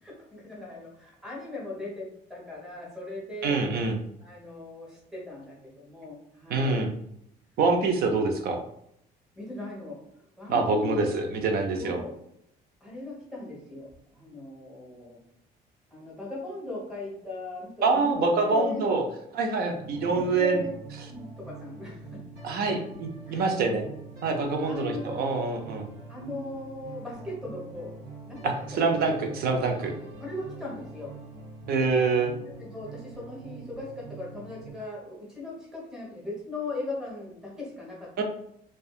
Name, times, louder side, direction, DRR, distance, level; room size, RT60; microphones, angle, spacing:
voice 1, 0.0-3.5 4.2-6.9 9.4-10.0 10.4-11.1 11.7-12.1 12.8-15.2 15.9-18.9 20.1-20.7 21.1-22.2 22.7-22.8 23.3-23.8 24.6-25.3 26.1-27.9 28.3-28.9 30.2-31.1 32.4-38.2, left 2 dB, 5° right, -4 dB, 1.1 m, -38 dB
voice 2, 3.4-4.0 6.5-6.9 7.6-8.6 10.5-12.0 17.8-19.0 19.3-20.6 22.4-23.9 24.2-25.9 28.4-29.9 31.7-32.3 38.2-38.3, right 4 dB, 65° right, 4 dB, 0.5 m, -25 dB
sound 1, 19.7-34.7, right 4 dB, 90° right, 1.2 m, -44 dB
2.5 x 2.3 x 2.4 m, 0.74 s
cardioid pair, 110°, 17 cm